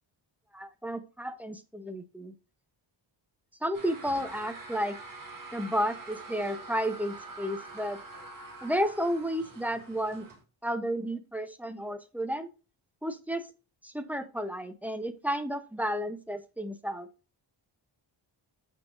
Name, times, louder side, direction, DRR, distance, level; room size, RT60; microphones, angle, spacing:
voice 1, 0.5-2.3 3.6-5.0 5.5-8.0 8.6-10.3 10.6-12.5 13.0-13.5 13.8-17.1, equal, 5° right, 9 dB, 0.5 m, -32 dB
sound 1, 3.7-10.4, right 2 dB, 45° right, 1.7 m, -45 dB
6.6 x 6.1 x 2.4 m, 0.32 s
wide cardioid pair, 155°, 47 cm